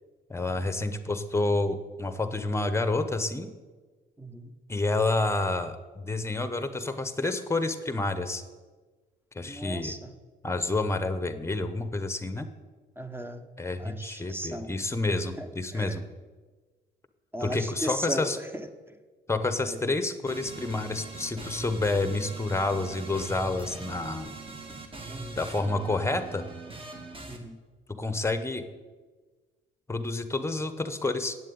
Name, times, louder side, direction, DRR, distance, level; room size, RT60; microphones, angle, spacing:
voice 1, 0.3-3.5 4.7-8.4 9.3-9.9 10.4-12.5 13.6-16.0 17.4-18.4 19.3-24.3 25.3-26.4 28.0-28.6 29.9-31.4, left 2 dB, 15° left, 10 dB, 1.0 m, -29 dB
voice 2, 4.2-4.5 9.4-10.1 13.0-13.4 13.8-14.7 15.4-15.5 15.7-16.0 17.3-18.7 19.7-19.8 25.1-25.4 27.3-27.5, right 1 dB, 10° right, 8 dB, 1.1 m, -36 dB
sound 1, 20.3-27.4, right 3 dB, 25° right, 1.9 m, -41 dB
8.7 x 7.5 x 8.6 m, 1.4 s
cardioid pair, 90°, 20 cm